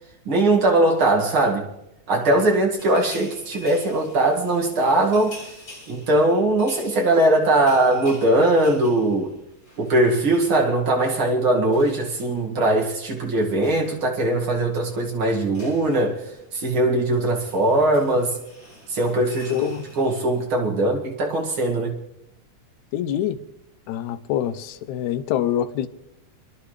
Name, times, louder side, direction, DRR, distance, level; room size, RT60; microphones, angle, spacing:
voice 1, 0.3-1.7 2.1-5.4 5.9-9.4 9.8-16.2 16.5-18.4 18.9-19.6 20.0-21.9, right 1 dB, 45° right, 2.8 m, -20 dB
sound 1, 2.8-10.7 10.9-11.1 11.4-20.4, left 1 dB, 35° left, 7.3 m, -47 dB
voice 2, 19.5-19.8 22.9-23.4 23.9-25.9, left 11 dB, 80° left, 2.1 m, -25 dB
29.5 x 11.0 x 3.3 m
omnidirectional pair, 3.4 m